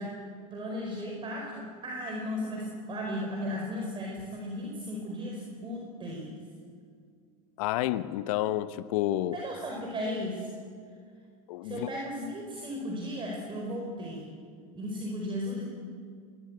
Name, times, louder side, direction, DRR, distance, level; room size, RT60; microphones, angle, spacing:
voice 1, 0.0-6.4 9.3-10.5 11.6-14.3 14.7-15.7, equal, 25° right, 0 dB, 4.7 m, -35 dB
voice 2, 7.6-9.4 11.5-11.9, left 14 dB, 65° left, 13 dB, 1.0 m, -29 dB
22.5 x 19.5 x 8.1 m, 2.1 s
hypercardioid pair, 105°, 19 cm